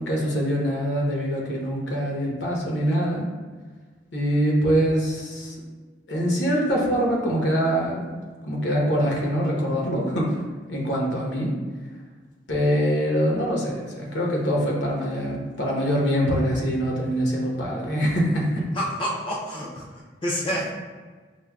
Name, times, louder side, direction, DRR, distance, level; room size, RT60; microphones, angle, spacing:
voice 1, 0.0-3.3 4.1-5.6 6.1-8.1 8.4-10.4 10.7-11.5 12.5-18.6, equal, 75° left, -2 dB, 0.9 m, -24 dB
voice 2, 18.7-20.7, equal, 30° left, -4 dB, 0.4 m, -29 dB
6.2 x 2.1 x 2.3 m, 1.4 s
head